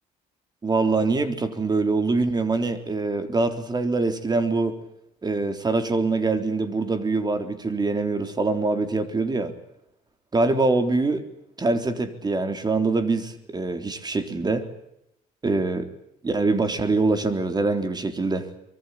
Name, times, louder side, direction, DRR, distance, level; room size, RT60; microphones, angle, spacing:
voice 1, 0.6-4.8 5.2-9.5 10.3-11.2 11.6-14.7 15.4-15.9 16.2-18.4, right 3 dB, 25° right, 9 dB, 3.8 m, -24 dB
25.0 x 23.0 x 8.6 m, 0.82 s
cardioid pair, 110°, 17 cm